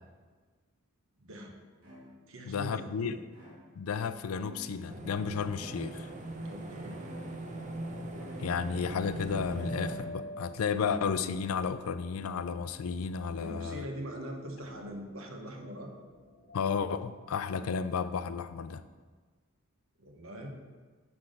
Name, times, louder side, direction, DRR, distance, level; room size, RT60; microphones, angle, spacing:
sound 1, 1.1-1.2 1.8-2.5 3.3-4.1 4.4-5.1 5.6-6.4 6.9-7.8 8.1-8.7 9.8-10.4 12.1-12.8 13.4-13.9 14.6-15.2, left 1 dB, 90° right, 2.4 m, -54 dB
voice 1, 1.2-1.6 2.3-3.2 6.4-7.0 13.3-15.9 20.0-20.5, equal, 70° right, 2 dB, 1.1 m, -42 dB
voice 2, 2.5-3.2 3.8-6.1 8.4-13.8 16.5-18.8, left 6 dB, 90° left, 13 dB, 0.4 m, -33 dB
sound 2, 4.9-10.0, right 1 dB, 35° right, 0.7 m, -40 dB
sound 3, 7.8-18.2, left 1 dB, 50° left, 1.2 m, -49 dB
6.1 x 5.8 x 5.0 m, 1.4 s
head